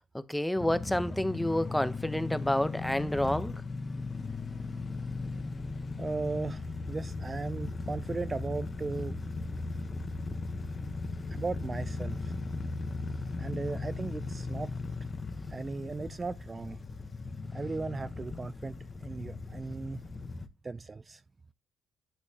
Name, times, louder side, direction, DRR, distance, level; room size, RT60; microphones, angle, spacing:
voice 1, 0.1-3.5, left 1 dB, 5° left, 0.7 m, -29 dB
sound 1, 0.6-20.5, left 3 dB, 30° left, 1.0 m, -37 dB
voice 2, 6.0-9.2 11.3-12.3 13.4-14.7 15.5-16.8 17.5-20.0 20.6-21.2, right 3 dB, 25° right, 0.4 m, -37 dB
11.0 x 4.2 x 2.8 m
cardioid pair, 90°, 0 cm